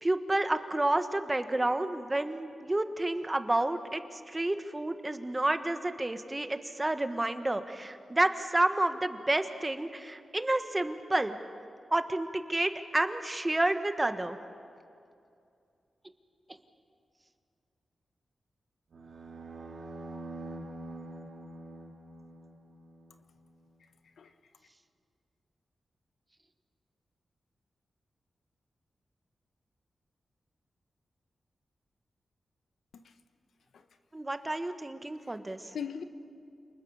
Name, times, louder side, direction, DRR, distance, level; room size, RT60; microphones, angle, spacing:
voice 1, 0.0-11.4 11.9-14.4 34.1-35.6, right 2 dB, 20° right, 8 dB, 1.3 m, -30 dB
sound 1, 18.9-23.2, right 2 dB, 75° right, 2.1 m, -45 dB
voice 2, 35.2-36.0, left 7 dB, 85° left, 8 dB, 1.1 m, -41 dB
28.5 x 20.0 x 5.6 m, 2.5 s
cardioid pair, 65°, 0 cm